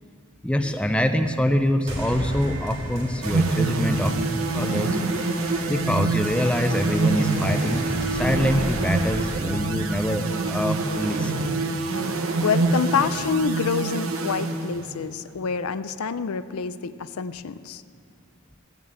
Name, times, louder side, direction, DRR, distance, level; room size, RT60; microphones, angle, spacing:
voice 1, 0.4-4.2 4.5-5.0 5.7-11.5, equal, 5° left, 7 dB, 0.5 m, -25 dB
sound 1, 1.9-10.9, right 1 dB, 30° right, 2.1 m, -35 dB
sound 2, 3.2-15.1, right 3 dB, 70° right, 0.9 m, -26 dB
voice 2, 12.4-17.8, left 6 dB, 80° left, 13 dB, 0.5 m, -27 dB
14.5 x 7.3 x 8.8 m, 2.3 s
head